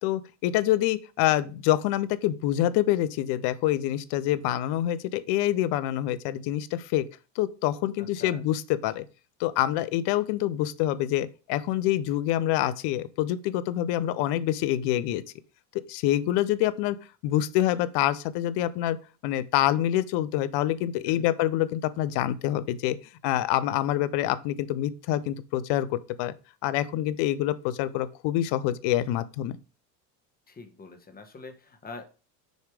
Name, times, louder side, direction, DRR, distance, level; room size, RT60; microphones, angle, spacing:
voice 1, 0.0-7.0 7.4-9.0 9.4-15.2 15.9-17.0 17.2-19.0 19.2-23.0 23.2-26.3 26.6-29.6, left 13 dB, 55° left, 0.7 m, -26 dB
voice 2, 8.0-8.4 21.1-21.3 30.5-32.0, left 3 dB, 20° left, 1.3 m, -44 dB
6.5 x 3.3 x 4.8 m
hypercardioid pair, 85°, 50 cm